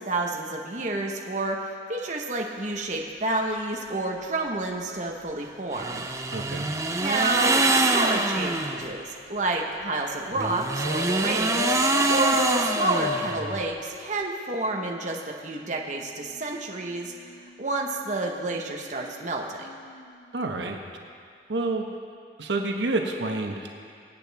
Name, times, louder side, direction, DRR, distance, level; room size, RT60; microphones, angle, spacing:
voice 1, 0.0-6.1 7.0-11.8 12.1-19.7, right 2 dB, 45° right, 0 dB, 1.1 m, -30 dB
sound 1, 5.7-8.9 10.3-13.7, right 2 dB, 15° right, 0.6 m, -25 dB
voice 2, 6.3-6.7 20.3-20.8 21.5-21.9 22.4-23.7, right 2 dB, 85° right, 2 dB, 1.1 m, -28 dB
sound 2, 8.2-15.2 15.6-20.3 22.2-22.3, left 5 dB, 85° left, 0.8 m, -39 dB
25.0 x 8.6 x 3.5 m, 2.3 s
head